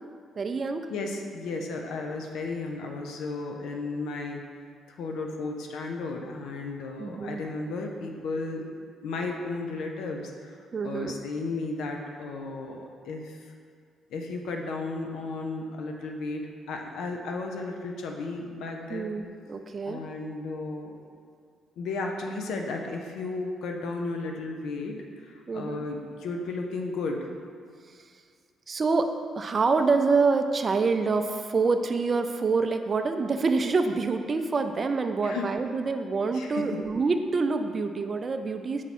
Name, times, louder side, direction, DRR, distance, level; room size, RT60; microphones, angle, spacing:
voice 1, 0.4-0.9 7.0-7.4 10.7-11.2 18.9-20.0 25.5-25.9 28.7-38.8, right 4 dB, 40° right, 7 dB, 0.4 m, -26 dB
voice 2, 0.9-4.4 5.0-8.7 9.0-10.6 10.8-13.5 14.1-16.4 16.7-19.1 19.8-21.0 21.8-27.3 35.2-35.5 36.3-36.8, left 3 dB, 80° left, 2 dB, 0.6 m, -34 dB
5.8 x 4.6 x 4.2 m, 2.1 s
cardioid pair, 90°, 0 cm